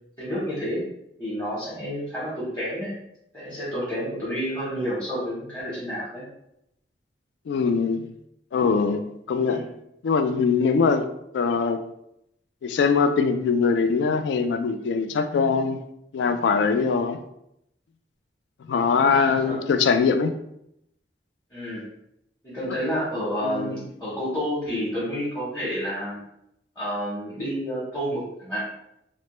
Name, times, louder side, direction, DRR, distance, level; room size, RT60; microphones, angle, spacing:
voice 1, 0.2-0.8 1.2-2.9 3.3-6.2 9.5-9.6 19.1-19.6 21.5-21.8 22.4-26.2 26.8-28.6, equal, 10° left, -8 dB, 0.8 m, -30 dB
voice 2, 7.5-8.1 8.5-9.6 10.0-11.1 11.3-11.8 12.6-15.8 16.1-17.2 18.7-20.3 23.4-23.8, left 5 dB, 75° left, 8 dB, 0.3 m, -22 dB
3.1 x 2.0 x 3.0 m, 0.79 s
head